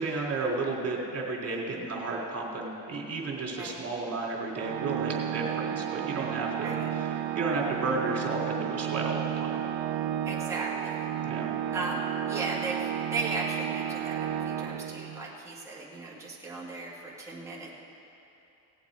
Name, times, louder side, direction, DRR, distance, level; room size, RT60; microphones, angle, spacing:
voice 1, 0.0-9.6 11.2-11.5, right 3 dB, 35° right, -2 dB, 2.9 m, -33 dB
Organ, 4.5-15.4, right 11 dB, 80° right, 0.6 m, -32 dB
voice 2, 10.3-11.1 11.7-17.7, right 2 dB, 5° right, -6 dB, 2.0 m, -36 dB
18.5 x 7.8 x 4.8 m, 2.8 s
cardioid pair, 110°, 43 cm